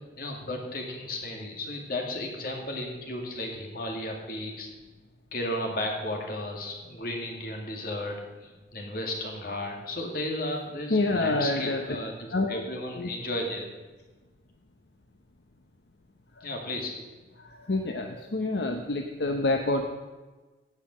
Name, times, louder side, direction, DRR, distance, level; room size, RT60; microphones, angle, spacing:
voice 1, 0.2-4.7 5.3-12.1 12.5-13.7 16.4-17.0, left 1 dB, 55° left, 1 dB, 2.2 m, -34 dB
voice 2, 10.9-11.8 12.3-12.6 12.9-13.1 16.4-16.5 17.4-19.9, left 2 dB, 75° left, 4 dB, 0.9 m, -27 dB
16.5 x 5.8 x 6.5 m, 1.2 s
head